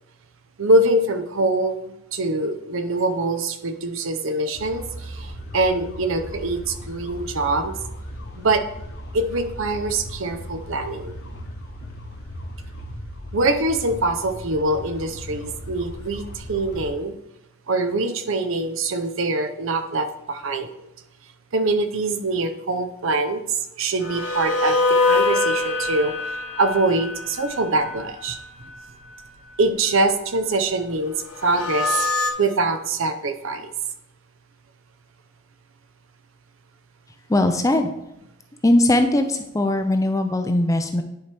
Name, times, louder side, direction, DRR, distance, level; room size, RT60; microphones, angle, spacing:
voice 1, 0.6-1.8 2.1-5.3 5.5-7.7 8.4-8.6 9.1-11.2 13.3-17.1 17.7-20.7 21.5-23.4 23.8-24.8 25.1-26.1 26.6-28.4 29.6-31.1 31.4-32.1 32.4-33.7, right 2 dB, 65° right, 8 dB, 0.7 m, -23 dB
sound 1, 4.5-16.9, equal, 50° left, 1.0 m, -37 dB
sound 2, 24.0-28.4 31.3-32.3, left 3 dB, 85° left, 1.5 m, -23 dB
voice 2, 37.3-37.9 38.6-41.0, left 1 dB, 15° left, 7 dB, 0.4 m, -20 dB
10.5 x 4.6 x 3.4 m, 0.88 s
head